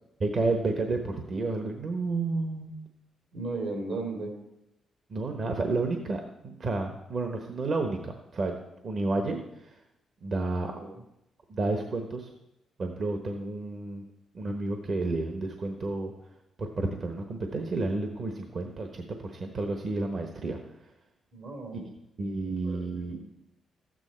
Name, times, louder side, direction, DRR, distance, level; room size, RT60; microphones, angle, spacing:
voice 1, 0.2-2.8 5.1-8.6 8.8-9.7 10.2-10.7 11.5-12.3 12.8-14.0 14.3-16.1 16.6-20.6 21.8-21.9 22.2-23.2, right 3 dB, 55° right, 5 dB, 1.0 m, -31 dB
voice 2, 3.3-4.3 10.8-11.0 21.3-21.9 22.4-23.2, right 3 dB, 75° right, 2 dB, 2.9 m, -36 dB
13.0 x 8.9 x 4.3 m, 0.89 s
cardioid pair, 90°, 0 cm